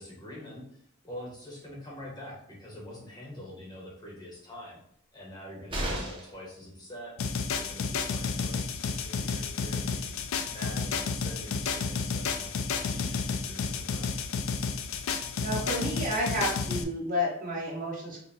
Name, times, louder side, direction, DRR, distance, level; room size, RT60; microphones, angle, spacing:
voice 1, 0.0-4.8 5.1-7.1 7.5-10.2 10.5-14.1, left 1 dB, 20° left, -4 dB, 0.8 m, -45 dB
sound 1, 5.7-6.4 8.4-8.5 8.8-8.9, right 1 dB, 25° right, 0.7 m, -33 dB
sound 2, 7.2-16.8, left 5 dB, 75° left, 0.4 m, -31 dB
voice 2, 15.4-18.2, equal, 40° right, -4 dB, 1.2 m, -31 dB
4.5 x 2.1 x 3.4 m, 0.69 s
head